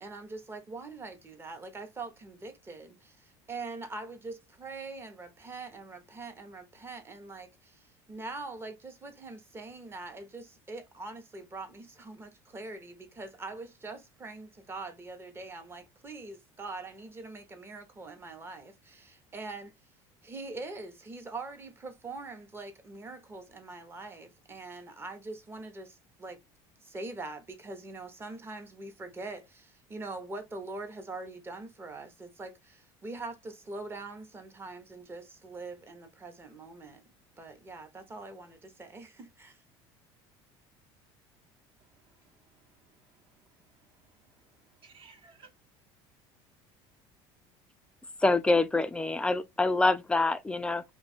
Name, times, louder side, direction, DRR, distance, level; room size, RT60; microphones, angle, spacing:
voice 1, 0.0-19.7 20.2-26.4 26.8-37.0 37.4-39.6, right 3 dB, 20° right, 0.8 m, -43 dB
voice 2, 41.8-43.2 43.6-43.7 44.1-45.5, right 5 dB, 45° right, 0.9 m, -60 dB
voice 3, 48.2-50.8, left 2 dB, 10° left, 0.3 m, -26 dB
2.7 x 2.3 x 4.0 m
supercardioid pair, 120°, 12 cm